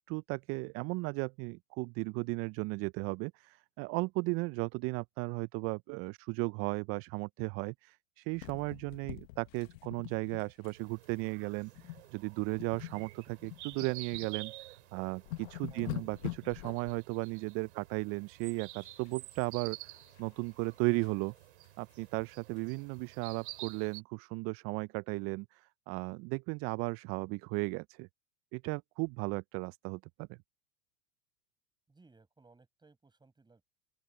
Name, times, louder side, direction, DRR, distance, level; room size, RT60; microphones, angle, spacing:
voice 1, 0.1-21.3 21.8-28.1 28.5-30.4, right 27 dB, 40° right, 0.4 m, -36 dB
sound 1, 8.4-10.8 11.0-11.2 11.7-12.1 12.4-14.3 14.7-14.8 15.1-17.0 18.8-19.4 19.7-21.2 21.6-21.7 22.0-22.1 22.6-22.7, left 20 dB, 65° left, 1.3 m, -45 dB
sound 2, 10.7-24.0, right 18 dB, 70° right, 2.5 m, -50 dB
voice 2, 15.7-16.1 31.9-33.7, right 3 dB, 10° right, 7.6 m, -61 dB
open air
hypercardioid pair, 95°, 35 cm